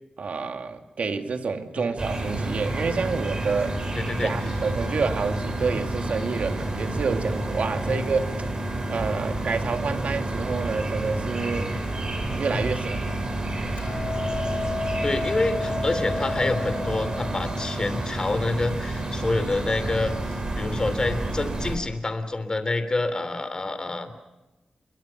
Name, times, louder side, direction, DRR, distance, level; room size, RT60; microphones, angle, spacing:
voice 1, 0.2-3.8 4.2-8.3 8.9-11.7 12.3-13.2, right 4 dB, 75° right, 6 dB, 2.3 m, -28 dB
sound 1, 2.0-21.8, right 1 dB, 40° right, 6.1 m, -29 dB
voice 2, 4.0-4.4 7.8-8.0 12.5-12.7 15.0-24.1, left 2 dB, 35° left, 10 dB, 3.2 m, -27 dB
Hammer, 13.8-20.0, left 3 dB, 80° left, 2.7 m, -33 dB
28.5 x 23.0 x 6.0 m, 1.0 s
wide cardioid pair, 100°, 2 cm